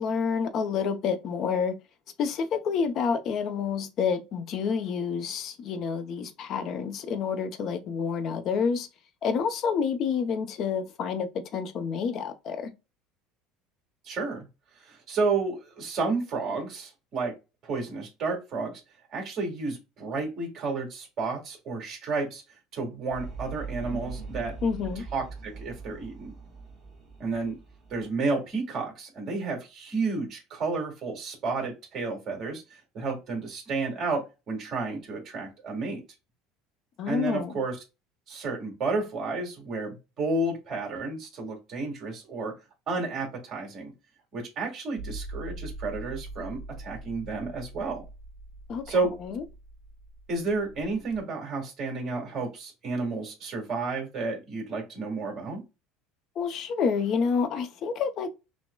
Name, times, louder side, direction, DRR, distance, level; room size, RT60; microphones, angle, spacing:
voice 1, 0.0-1.8 2.2-8.9 9.2-12.7 24.6-25.0 37.0-37.5 48.7-48.8 49.2-49.4 56.4-58.3, left 6 dB, 45° left, 0.6 m, -28 dB
voice 2, 14.0-14.5 14.8-17.4 17.6-18.8 19.1-22.4 22.7-24.5 25.1-26.3 27.2-27.6 27.9-36.0 37.1-37.8 38.3-42.5 42.9-43.9 44.3-48.0 48.9-49.1 50.3-55.6, right 3 dB, 35° right, 1.7 m, -31 dB
sound 1, 23.1-28.1, right 5 dB, 15° right, 1.4 m, -41 dB
sound 2, 45.0-51.2, right 2 dB, 65° right, 0.6 m, -42 dB
5.9 x 2.1 x 2.2 m
cardioid pair, 140°, 0 cm